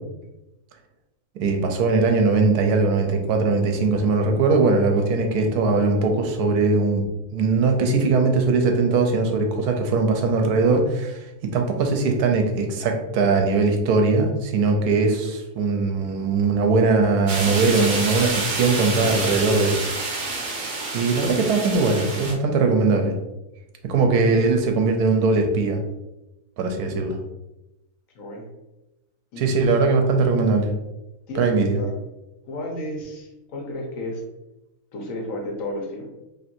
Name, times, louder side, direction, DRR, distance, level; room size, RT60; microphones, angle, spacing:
voice 1, 1.4-7.1 7.3-19.8 20.9-23.2 23.8-25.8 26.6-27.2 29.4-30.7 31.3-31.8, right 3 dB, 85° right, 4 dB, 1.1 m, -20 dB
sound 1, 17.3-22.3, right 3 dB, 60° right, 1.0 m, -28 dB
voice 2, 28.1-28.5 29.3-29.5 31.3-31.9 32.5-34.2 34.9-36.1, left 1 dB, 65° left, 0 dB, 1.3 m, -32 dB
4.3 x 3.0 x 2.5 m, 0.97 s
omnidirectional pair, 1.6 m